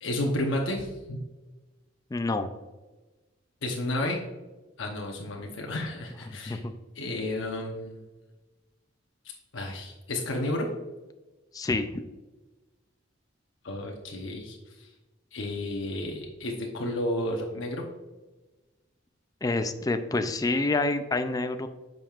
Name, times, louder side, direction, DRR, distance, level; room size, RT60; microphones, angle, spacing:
voice 1, 0.0-1.2 3.6-4.2 4.8-6.6 6.9-8.0 9.5-10.7 13.6-14.9 15.3-17.8, left 1 dB, 80° left, 0 dB, 0.8 m, -32 dB
voice 2, 2.1-2.5 6.5-6.7 11.5-11.9 19.4-21.7, left 2 dB, 20° left, 8 dB, 0.4 m, -27 dB
8.5 x 5.3 x 2.4 m, 1.2 s
head